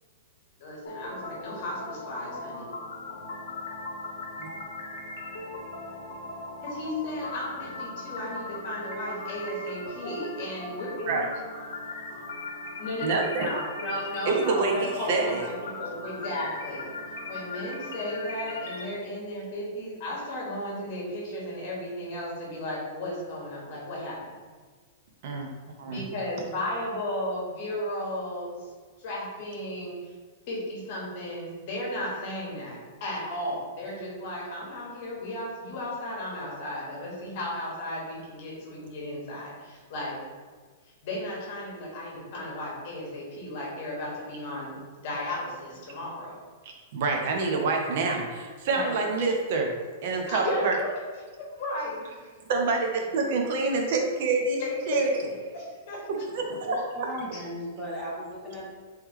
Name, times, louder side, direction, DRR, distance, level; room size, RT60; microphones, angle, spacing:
voice 1, 0.6-2.7 6.6-11.4 12.8-16.9 17.3-24.3 25.8-28.7 29.0-30.1 30.5-40.2 41.0-46.4 48.7-48.9 50.2-51.0 51.4-52.0 54.6-56.0 56.7-56.8 57.3-57.4, left 1 dB, 40° left, -4 dB, 1.1 m, -34 dB
sound 1, 0.9-18.9, left 2 dB, 85° left, 0.7 m, -39 dB
voice 2, 13.0-13.5 14.3-15.4 25.2-25.5 25.8-26.1 46.6-49.7 50.0-50.8 52.5-54.6 54.9-55.1 56.3-56.8, right 3 dB, 50° right, 2 dB, 0.5 m, -27 dB
voice 3, 57.0-58.7, equal, 5° right, -6 dB, 0.6 m, -36 dB
3.1 x 3.0 x 3.5 m, 1.5 s
supercardioid pair, 165°, 0 cm